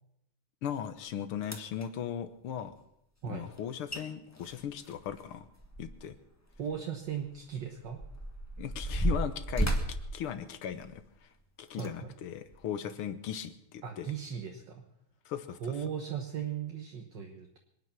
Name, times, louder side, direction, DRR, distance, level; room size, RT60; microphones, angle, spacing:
voice 1, 0.6-2.7 3.2-5.5 5.8-6.2 8.6-9.8 10.1-11.3 11.6-14.1 15.3-15.6, left 9 dB, 85° left, 11 dB, 2.0 m, -38 dB
sound 1, 1.0-1.1 1.4-1.9 3.6-3.7 3.9-4.0 4.4-6.2 6.5-6.6 7.3-11.1 11.7-11.9 12.5-12.6, right 1 dB, 10° left, 1.4 m, -34 dB
voice 2, 6.6-8.0 11.8-12.2 13.8-14.9 15.6-17.6, right 8 dB, 60° right, 3 dB, 1.9 m, -37 dB
24.5 x 9.5 x 5.9 m, 0.78 s
omnidirectional pair, 2.4 m